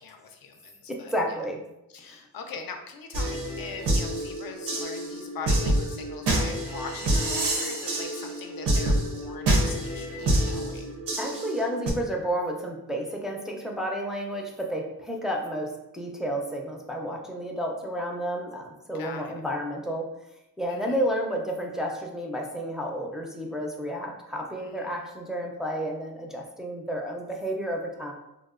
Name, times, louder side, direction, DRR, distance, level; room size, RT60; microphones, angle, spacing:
voice 1, 0.0-1.1 1.9-10.8 11.2-11.5 19.0-19.3 20.7-20.9 24.6-25.0, left 5 dB, 65° left, 5 dB, 0.5 m, -41 dB
voice 2, 0.9-1.6 2.1-2.2 11.2-20.1 20.6-28.1, equal, ahead, 0 dB, 0.4 m, -31 dB
sound 1, 3.1-11.9, right 1 dB, 90° right, 0.6 m, -27 dB
2.8 x 2.0 x 2.4 m, 0.89 s
cardioid pair, 75°, 38 cm